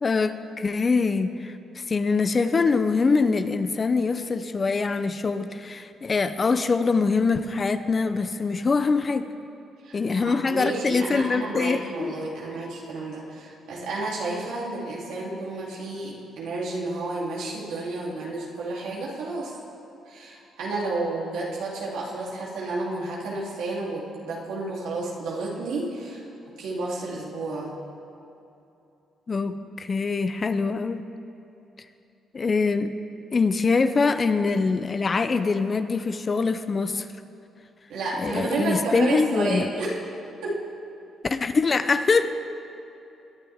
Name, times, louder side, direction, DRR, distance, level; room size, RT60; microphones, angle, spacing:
voice 1, 0.0-9.3 9.9-12.1 29.3-31.0 32.3-32.9 33.3-37.1 38.2-39.7 41.2-42.3, left 4 dB, 35° left, 11 dB, 0.7 m, -24 dB
voice 2, 9.8-19.5 20.0-26.2 26.6-27.7 37.9-40.0 40.4-40.6, right 2 dB, 90° right, -5 dB, 3.2 m, -31 dB
21.0 x 11.5 x 3.6 m, 2.8 s
cardioid pair, 90°, 0 cm